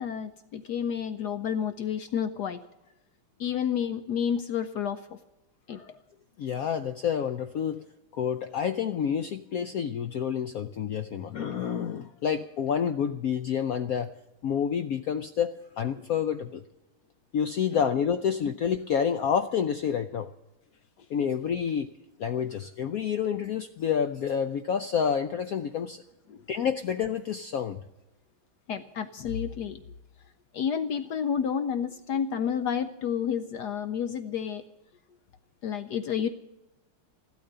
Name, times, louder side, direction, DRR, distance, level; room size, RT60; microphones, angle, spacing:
voice 1, 0.0-2.6 3.4-5.2 5.7-5.9 26.3-26.4 28.7-29.8 30.5-34.6 35.6-36.3, left 8 dB, 70° left, 11 dB, 1.0 m, -30 dB
voice 2, 6.4-7.8 8.1-14.1 14.4-16.6 17.3-20.3 21.1-21.9 22.2-26.0 26.5-27.8, left 7 dB, 85° left, 10 dB, 0.7 m, -28 dB
14.0 x 12.5 x 6.7 m, 0.96 s
omnidirectional pair, 2.3 m